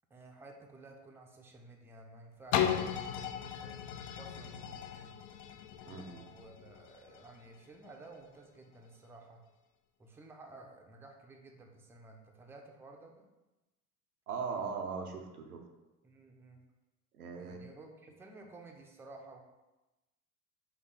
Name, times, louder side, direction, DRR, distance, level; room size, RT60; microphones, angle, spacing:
voice 1, 0.1-3.8 4.1-5.2 5.8-9.4 10.0-13.3 16.0-16.6 17.3-19.4, right 2 dB, 5° right, 1 dB, 0.5 m, -54 dB
sound 1, 2.5-8.3 8.8-8.9, left 9 dB, 45° left, 0.4 m, -37 dB
voice 2, 5.9-6.3 14.3-15.7 17.1-17.6, right 5 dB, 90° right, 3 dB, 0.6 m, -39 dB
4.4 x 2.7 x 3.9 m, 1.0 s
figure-of-eight pair, 70°, 44 cm